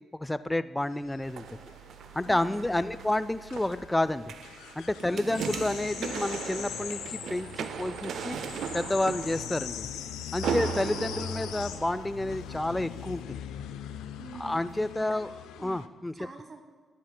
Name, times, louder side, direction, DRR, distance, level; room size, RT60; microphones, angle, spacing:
voice 1, 0.1-1.4 2.1-4.3 4.8-8.4 8.7-9.9 10.3-13.4 14.4-15.3 15.6-16.1, left 1 dB, 15° left, 15 dB, 0.4 m, -30 dB
sound 1, 0.9-15.9, left 10 dB, 90° left, 0.3 m, -41 dB
sound 2, 1.0-15.0, right 12 dB, 25° right, 1.8 m, -56 dB
sound 3, 1.2-12.5 13.0-13.1, right 7 dB, 70° right, 0.4 m, -38 dB
voice 2, 2.2-2.8 5.1-5.4 14.2-15.8 16.1-16.6, right 4 dB, 45° right, 6 dB, 1.2 m, -48 dB
12.5 x 10.0 x 2.2 m, 1.5 s
supercardioid pair, 60°, 0 cm